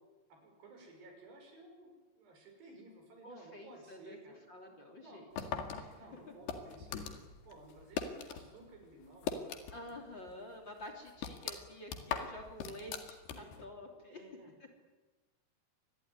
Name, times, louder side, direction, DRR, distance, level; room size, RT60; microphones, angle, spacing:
voice 1, 0.3-4.4 5.0-5.3 6.0-7.1 7.5-9.3 13.4-13.5 13.8-14.5, right 2 dB, 80° right, 3 dB, 8.3 m, -56 dB
voice 2, 3.2-4.2 4.5-5.5 5.7-6.0 9.7-14.2, left 1 dB, 30° left, 5 dB, 3.3 m, -49 dB
sound 1, 5.4-8.5 8.8-10.0 10.3-10.4 10.8-13.7, left 7 dB, 75° left, 4.1 m, -40 dB
26.5 x 21.0 x 9.7 m, 1.2 s
omnidirectional pair, 4.7 m